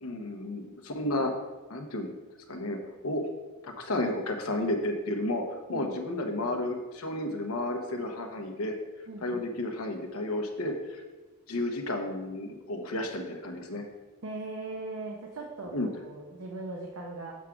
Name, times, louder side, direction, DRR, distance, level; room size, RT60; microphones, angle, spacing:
voice 1, 0.0-1.3 1.7-2.1 2.5-3.2 3.6-5.4 5.7-8.7 9.2-11.0 11.5-13.8 15.7-15.9, left 1 dB, 85° left, 3 dB, 1.0 m, -32 dB
voice 2, 5.7-6.5 9.1-9.4 14.2-17.3, right 2 dB, 75° right, -1 dB, 0.9 m, -40 dB
7.3 x 3.7 x 5.9 m, 1.2 s
head